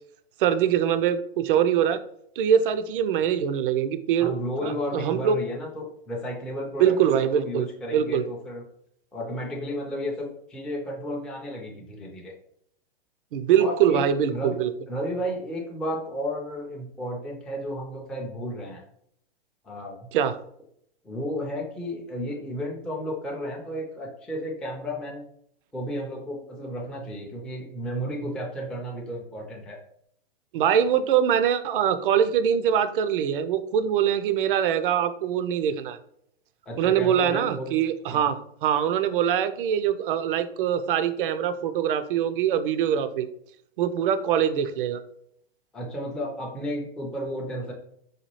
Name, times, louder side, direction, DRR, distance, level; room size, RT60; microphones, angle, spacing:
voice 1, 0.4-2.0 2.4-4.3 4.6-5.4 6.8-7.7 7.9-8.2 13.3-14.7 20.1-20.4 30.5-36.0 36.8-43.3 43.8-45.0, right 9 dB, 60° right, 11 dB, 0.4 m, -23 dB
voice 2, 4.2-8.6 9.1-12.3 13.6-14.6 14.9-18.8 19.6-20.0 21.0-25.2 25.7-29.8 36.7-37.7 38.1-38.3 45.7-47.7, equal, ahead, -2 dB, 0.4 m, -33 dB
4.2 x 2.2 x 3.0 m, 0.70 s
hypercardioid pair, 110°, 31 cm